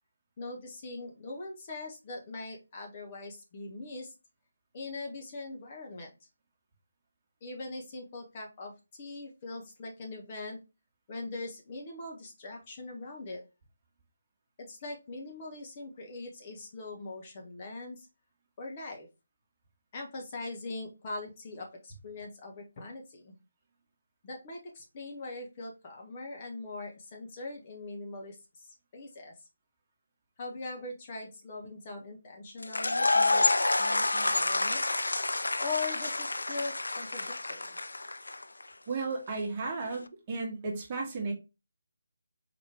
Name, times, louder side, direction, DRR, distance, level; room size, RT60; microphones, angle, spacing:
voice 1, 0.4-4.1 4.7-6.1 7.4-10.6 11.1-13.4 14.6-18.1 18.6-19.1 19.9-23.3 24.2-28.7 28.9-29.3 30.4-34.8 35.6-37.8, left 3 dB, 30° left, 0 dB, 1.2 m, -41 dB
sound 1, 32.6-38.6, left 2 dB, 70° left, 0.4 m, -28 dB
voice 2, 38.9-41.3, right 3 dB, 25° right, -1 dB, 1.4 m, -34 dB
4.3 x 3.1 x 3.3 m, 0.27 s
figure-of-eight pair, 150°, 0 cm